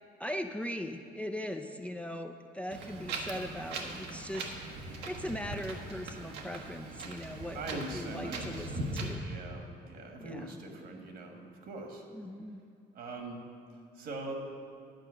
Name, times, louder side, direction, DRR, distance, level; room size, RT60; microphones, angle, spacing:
voice 1, 0.2-9.2 10.2-10.6 12.1-12.6, left 1 dB, 5° left, 5 dB, 0.4 m, -40 dB
Wind, 2.7-9.1, right 2 dB, 85° right, 1.2 m, -40 dB
voice 2, 7.5-12.0 12.9-13.4 13.9-14.3, right 2 dB, 65° right, 3 dB, 1.6 m, -42 dB
10.5 x 5.1 x 7.5 m, 2.4 s
cardioid pair, 110°, 17 cm